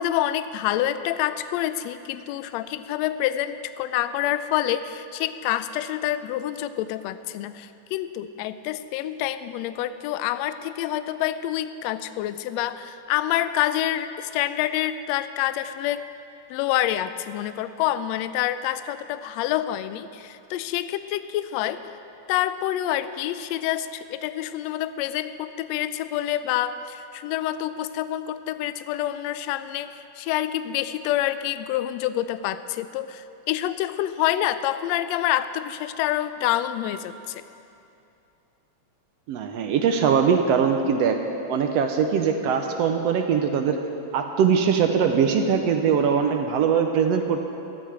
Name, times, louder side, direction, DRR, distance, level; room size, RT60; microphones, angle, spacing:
voice 1, 0.0-16.0 16.5-21.8 22.3-37.4, left 12 dB, 80° left, 12 dB, 1.6 m, -27 dB
voice 2, 39.3-41.2 41.5-43.8 44.1-47.4, right 7 dB, 75° right, 5 dB, 1.6 m, -21 dB
14.5 x 13.5 x 4.9 m, 2.7 s
omnidirectional pair, 3.4 m